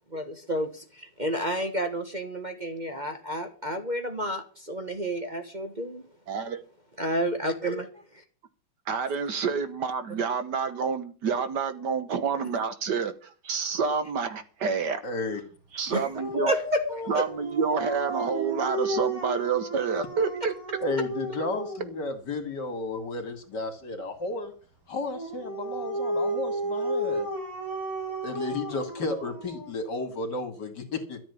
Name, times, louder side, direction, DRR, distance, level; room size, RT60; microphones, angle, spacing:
voice 1, 0.1-6.0 7.0-7.9 15.9-16.0 16.5-16.8 17.1-17.2, right 1 dB, 25° right, 1.5 m, -30 dB
voice 2, 6.3-6.6 8.9-15.0 15.7-16.5 17.1-20.5, right 5 dB, 60° right, 1.7 m, -28 dB
voice 3, 15.0-15.4 20.8-24.5 24.9-27.3 28.2-31.2, left 3 dB, 60° left, 3.1 m, -33 dB
Dog, 16.1-22.0 25.1-29.7, right 1 dB, 45° right, 4.1 m, -32 dB
13.5 x 7.7 x 8.3 m
omnidirectional pair, 2.2 m